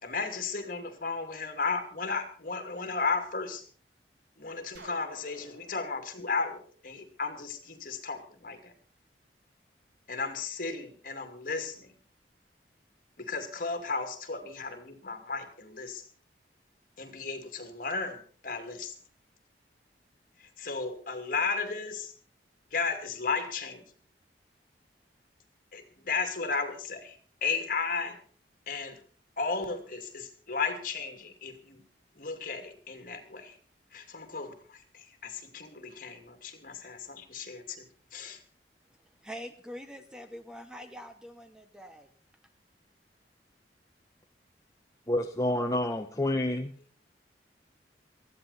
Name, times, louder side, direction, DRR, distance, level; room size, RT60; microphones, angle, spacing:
voice 1, 0.0-3.6 4.4-8.7 10.1-11.9 13.2-16.0 17.0-18.9 20.4-22.1 22.7-23.8 25.7-28.2 28.7-29.0 29.4-31.8 32.2-33.6 33.9-37.9 38.1-38.4, left 4 dB, 50° left, 2.6 m, -34 dB
sound 1, 4.8-7.6, right 2 dB, 75° right, 1.7 m, -53 dB
voice 2, 38.9-42.1, equal, 5° right, 0.9 m, -45 dB
voice 3, 45.1-46.7, left 1 dB, 20° left, 0.8 m, -28 dB
18.5 x 14.0 x 4.2 m
head